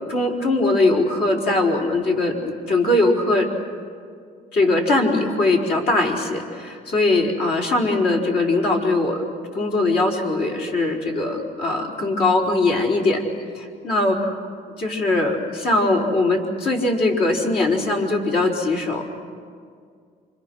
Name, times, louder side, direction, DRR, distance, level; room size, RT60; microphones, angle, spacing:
voice 1, 0.0-3.5 4.5-9.2 9.5-13.2 13.5-14.4 14.8-19.1, left 2 dB, 75° left, -1 dB, 4.7 m, -21 dB
28.0 x 26.0 x 6.4 m, 2.1 s
cardioid pair, 110°, 17 cm